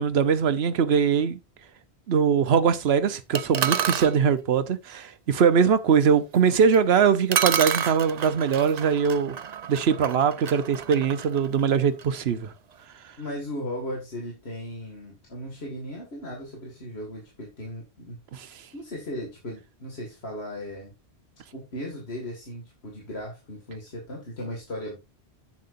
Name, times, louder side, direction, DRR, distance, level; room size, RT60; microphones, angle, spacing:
voice 1, 0.0-1.4 2.1-9.4 9.7-12.5 18.3-18.5, right 6 dB, 70° right, 1.1 m, -22 dB
sound 1, 3.3-4.1 6.7-6.8 7.3-12.1, right 8 dB, 50° right, 0.6 m, -29 dB
voice 2, 13.2-18.2 18.7-20.9 21.5-25.0, left 1 dB, 70° left, 2.4 m, -37 dB
10.5 x 8.6 x 2.6 m
omnidirectional pair, 1.1 m